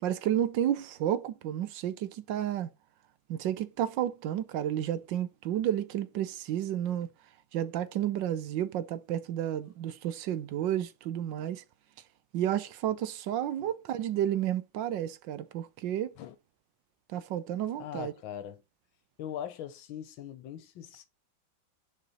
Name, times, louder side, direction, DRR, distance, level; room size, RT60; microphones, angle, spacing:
voice 1, 0.0-2.7 3.3-7.1 7.5-11.6 12.3-16.1 17.1-18.1, right 11 dB, 75° right, 1.3 m, -31 dB
voice 2, 17.8-18.6 19.2-21.1, left 10 dB, 80° left, 1.7 m, -41 dB
6.7 x 5.1 x 4.1 m
omnidirectional pair, 2.1 m